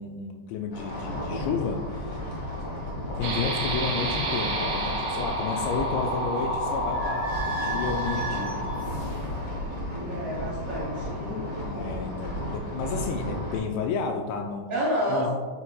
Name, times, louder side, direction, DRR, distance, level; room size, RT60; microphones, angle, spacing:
voice 1, 0.0-2.2 3.1-8.7 11.6-14.7 15.1-15.3, left 5 dB, 85° left, 3 dB, 2.8 m, -32 dB
sound 1, 0.7-13.6, left 1 dB, 70° left, 0.9 m, -34 dB
sound 2, 3.2-9.4, right 1 dB, 80° right, 3.8 m, -30 dB
Idling / Squeak, 6.7-13.1, right 3 dB, 60° right, 3.1 m, -39 dB
voice 2, 9.9-11.5 14.7-15.3, equal, 30° right, -7 dB, 1.5 m, -29 dB
11.0 x 5.7 x 2.3 m, 1.5 s
omnidirectional pair, 5.0 m